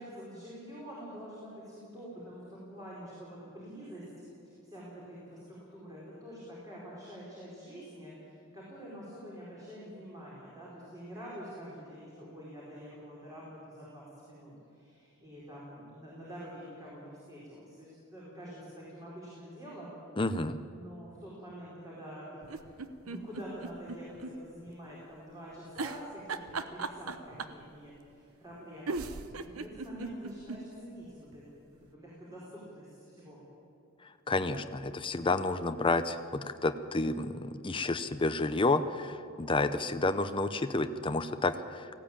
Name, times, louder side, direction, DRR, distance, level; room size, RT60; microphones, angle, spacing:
voice 1, 0.0-4.0 4.4-20.0 20.7-22.7 23.0-33.4, equal, 15° right, -7 dB, 4.8 m, -47 dB
voice 2, 20.2-20.6 34.3-41.9, left 2 dB, 25° left, 9 dB, 0.7 m, -30 dB
sound 1, 22.4-24.3 24.7-24.8 25.8-27.6 28.5-28.6 28.9-30.6 31.0-31.1 31.3-31.4, right 4 dB, 90° right, 1.0 m, -37 dB
19.0 x 15.5 x 8.8 m, 2.6 s
head